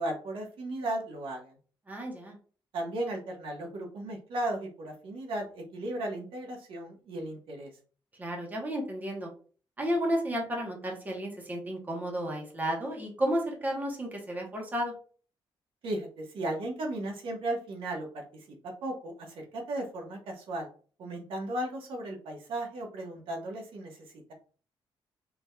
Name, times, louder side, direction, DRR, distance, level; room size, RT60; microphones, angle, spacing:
voice 1, 0.0-1.5 2.7-7.7 15.8-18.2 18.8-20.7 21.0-24.0, right 1 dB, 75° right, 1 dB, 1.3 m, -35 dB
voice 2, 1.9-2.3 8.2-9.3 9.8-14.9, equal, 20° right, 0 dB, 1.1 m, -32 dB
3.9 x 3.5 x 2.3 m, 0.40 s
cardioid pair, 135°, 9 cm